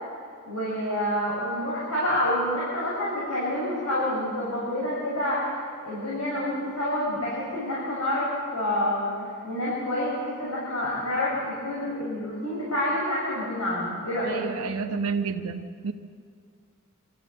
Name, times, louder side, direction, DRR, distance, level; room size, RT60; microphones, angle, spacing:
voice 1, 0.5-9.1 9.4-14.4, left 1 dB, 85° left, -7 dB, 6.4 m, -28 dB
voice 2, 14.3-15.9, right 5 dB, 80° right, 5 dB, 0.9 m, -30 dB
25.0 x 14.0 x 7.8 m, 2.1 s
head